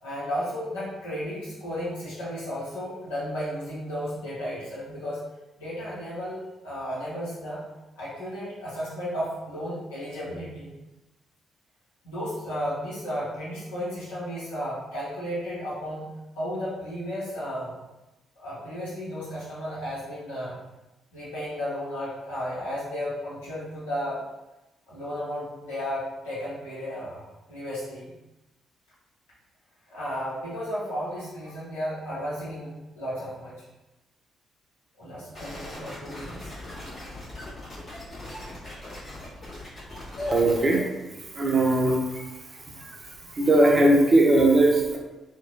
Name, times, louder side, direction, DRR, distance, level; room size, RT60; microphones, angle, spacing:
voice 1, 0.0-5.2 5.6-7.6 8.0-10.7 12.0-16.0 16.4-17.8 18.4-20.6 21.1-24.2 24.9-27.2 27.5-28.1 29.9-33.6 35.0-36.5 40.2-40.5, equal, 75° left, -10 dB, 1.1 m, -33 dB
sound 1, 35.3-40.7, left 1 dB, 40° left, 1.4 m, -40 dB
voice 2, 40.3-40.8 41.3-42.3 43.3-45.0, right 1 dB, 35° right, 0 dB, 0.6 m, -19 dB
2.9 x 2.3 x 2.5 m, 1.0 s
figure-of-eight pair, 40°, 0 cm